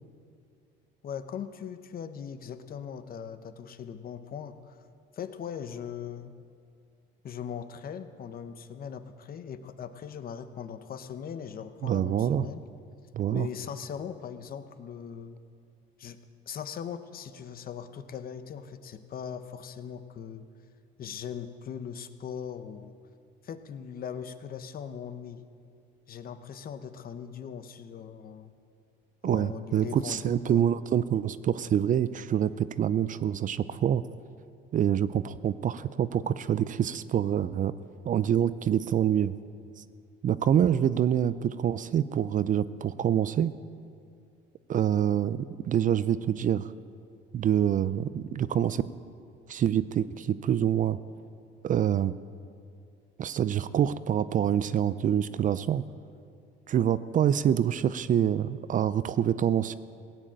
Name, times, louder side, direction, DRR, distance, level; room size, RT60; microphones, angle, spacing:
voice 1, 1.0-4.7 5.1-6.3 7.2-12.6 13.3-15.4 16.0-16.2 16.5-20.4 21.0-23.0 23.4-25.4 26.1-28.5 29.2-30.6, left 8 dB, 45° left, 10 dB, 0.9 m, -40 dB
voice 2, 11.8-12.5 13.1-13.5 29.2-34.0 34.7-37.7 38.0-39.3 40.2-43.5 44.7-46.7 47.3-48.8 49.5-51.0 51.6-52.1 53.2-55.8 56.7-59.8, right 9 dB, 40° right, 15 dB, 0.4 m, -26 dB
17.0 x 7.7 x 8.8 m, 2.3 s
cardioid pair, 115°, 21 cm